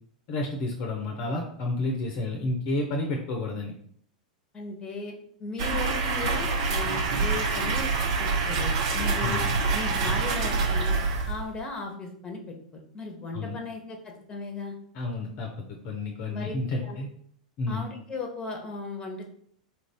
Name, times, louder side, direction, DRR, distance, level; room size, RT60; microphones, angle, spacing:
voice 1, 0.3-3.7 9.2-9.5 13.3-13.6 14.9-15.5 15.8-17.1 17.6-17.8, left 2 dB, 45° left, 1 dB, 0.7 m, -30 dB
voice 2, 4.5-7.9 8.2-9.4 9.7-11.0 11.3-14.7 16.3-16.5 16.8-17.0 17.7-19.3, left 3 dB, 20° left, 2 dB, 1.0 m, -36 dB
sound 1, 5.6-11.6, right 4 dB, 55° right, 0.7 m, -26 dB
4.5 x 2.5 x 3.4 m, 0.63 s
figure-of-eight pair, 90°, 4 cm